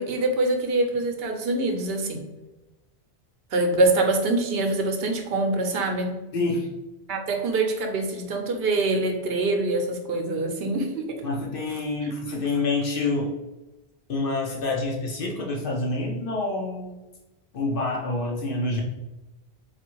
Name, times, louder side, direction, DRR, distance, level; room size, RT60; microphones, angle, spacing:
voice 1, 0.0-2.2 3.5-6.2 7.1-11.2, right 2 dB, 70° right, 4 dB, 0.9 m, -24 dB
voice 2, 6.3-6.7 11.2-13.3 14.1-16.9 17.5-18.8, left 2 dB, 60° left, -1 dB, 0.8 m, -27 dB
3.6 x 2.5 x 4.4 m, 1.0 s
omnidirectional pair, 1.1 m